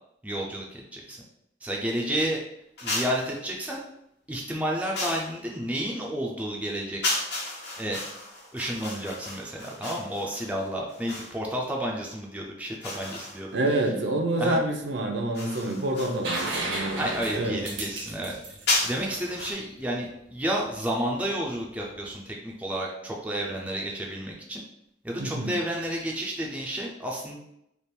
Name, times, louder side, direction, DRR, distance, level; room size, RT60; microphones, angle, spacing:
voice 1, 0.2-1.2 1.6-2.4 2.8-3.8 4.3-7.0 7.8-8.0 8.5-13.6 14.4-14.6 16.9-18.3 18.8-24.6 25.0-27.4, equal, 5° right, -2 dB, 0.4 m, -31 dB
sound 1, 2.8-3.3 4.9-5.4 7.0-11.4 12.8-13.7 15.3-16.6 18.7-19.5, left 2 dB, 60° left, 1.0 m, -33 dB
voice 2, 13.5-17.6 25.2-25.5, right 1 dB, 70° right, 3 dB, 0.6 m, -27 dB
sound 2, 16.2-19.9 21.8-21.9, right 2 dB, 85° right, 1.0 m, -34 dB
3.4 x 2.4 x 4.3 m, 0.78 s
head